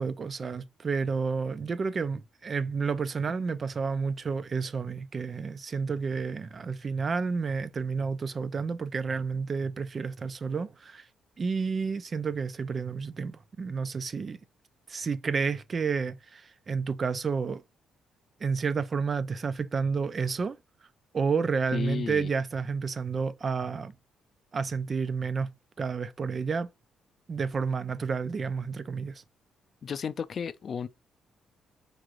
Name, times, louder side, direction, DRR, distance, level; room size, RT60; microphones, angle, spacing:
voice 1, 0.0-11.1 11.4-14.4 14.9-17.6 18.4-20.6 21.1-23.9 24.5-25.5 25.8-26.7 27.3-29.2, right 5 dB, 40° right, 0.4 m, -30 dB
voice 2, 21.7-22.3 29.8-30.9, left 6 dB, 50° left, 0.4 m, -33 dB
4.8 x 3.0 x 2.5 m
cardioid pair, 90°, 0 cm